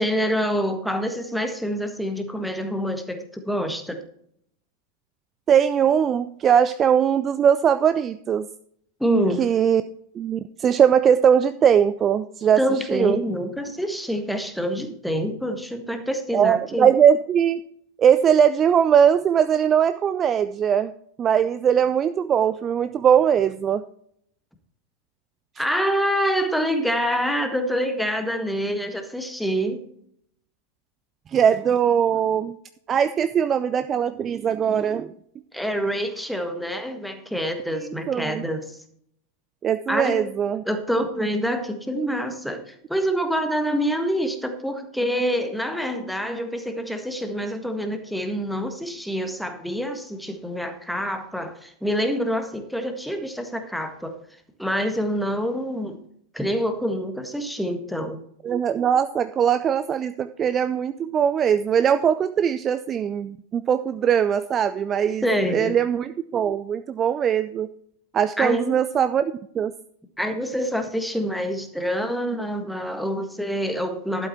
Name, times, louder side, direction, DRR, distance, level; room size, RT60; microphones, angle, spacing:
voice 1, 0.0-4.0 9.0-9.5 12.6-16.9 25.6-29.8 35.5-38.8 39.9-40.3 40.6-54.1 54.6-56.0 56.3-58.2 65.2-65.8 68.4-68.8 70.2-74.3, equal, ahead, 6 dB, 1.6 m, -26 dB
voice 2, 5.5-8.5 9.4-9.8 10.2-12.6 12.9-13.2 16.3-17.6 18.0-20.9 21.2-23.8 31.3-32.5 32.9-35.1 38.1-38.4 39.6-40.6 58.4-65.2 65.5-67.7 68.1-69.7, right 8 dB, 25° right, 13 dB, 0.4 m, -20 dB
12.0 x 8.3 x 4.3 m, 0.69 s
figure-of-eight pair, 90°, 0 cm